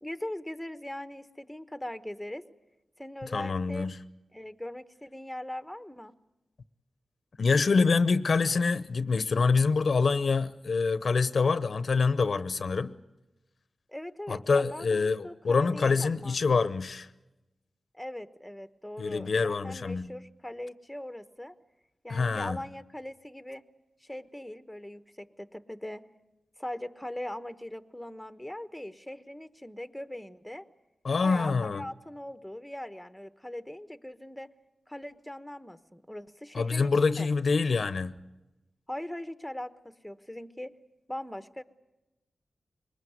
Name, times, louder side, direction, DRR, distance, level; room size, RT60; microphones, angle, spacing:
voice 1, 0.0-2.4 3.0-3.9 4.3-6.1 13.9-16.4 17.9-21.5 22.0-23.6 24.0-26.1 26.6-30.6 31.2-34.5 34.9-37.3 38.9-40.7 41.1-41.6, left 1 dB, 5° left, 1.1 m, -40 dB
voice 2, 3.3-4.0 7.4-12.9 14.3-17.1 19.0-20.1 22.1-22.6 31.0-31.8 36.5-38.2, left 4 dB, 60° left, 0.8 m, -26 dB
22.5 x 20.0 x 9.4 m
cardioid pair, 70°, 0 cm